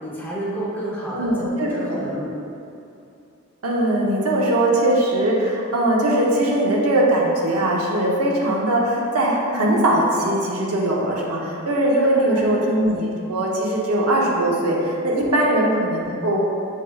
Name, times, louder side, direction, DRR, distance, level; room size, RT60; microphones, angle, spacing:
voice 1, 0.0-2.3 12.0-12.5 15.1-15.4, right 1 dB, 10° left, -7 dB, 0.8 m, -30 dB
voice 2, 1.1-2.0 3.6-16.4, right 1 dB, 90° right, -3 dB, 0.8 m, -20 dB
6.4 x 3.6 x 2.3 m, 2.7 s
head